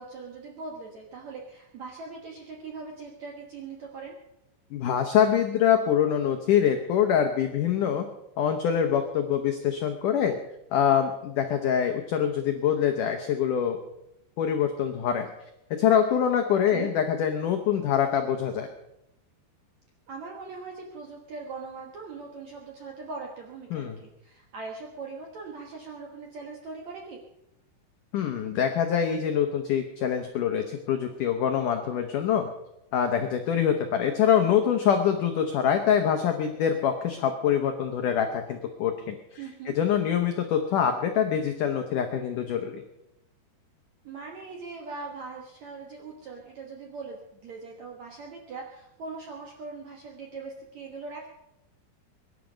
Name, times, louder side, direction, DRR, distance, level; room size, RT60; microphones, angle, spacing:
voice 1, 0.0-4.2 16.7-16.9 20.1-27.2 39.4-39.7 44.0-51.3, right 4 dB, 60° right, 0 dB, 1.9 m, -41 dB
voice 2, 4.7-8.1 8.4-10.4 10.7-13.8 14.4-15.3 15.8-18.7 23.7-24.0 28.1-32.5 32.9-39.2 39.7-42.8, left 8 dB, 80° left, 5 dB, 1.8 m, -25 dB
22.5 x 11.0 x 5.2 m, 0.88 s
omnidirectional pair, 5.2 m